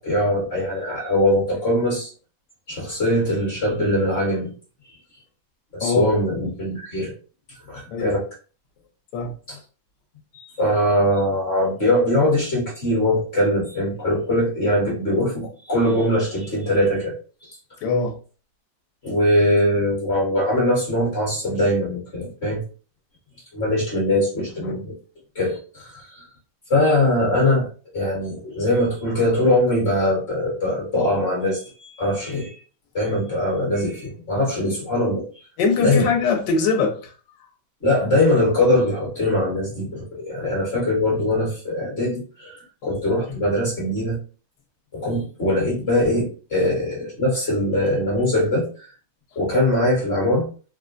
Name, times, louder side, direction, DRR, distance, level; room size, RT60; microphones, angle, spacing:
voice 1, 0.0-2.1 2.7-4.5 5.7-7.1 7.7-8.2 9.5-9.6 10.3-17.1 17.4-17.6 19.0-22.6 23.5-25.0 25.3-26.3 26.7-27.7 27.9-32.6 32.9-35.3 35.8-36.1 37.8-44.2 44.9-48.7 49.3-50.5, left 1 dB, 40° left, 1.2 m, -22 dB
voice 2, 17.8-18.1 21.5-21.6 24.6-24.7 35.6-37.1 42.8-42.9 45.0-45.1, left 4 dB, 70° left, 1.4 m, -22 dB
3.7 x 2.1 x 2.5 m
omnidirectional pair, 2.1 m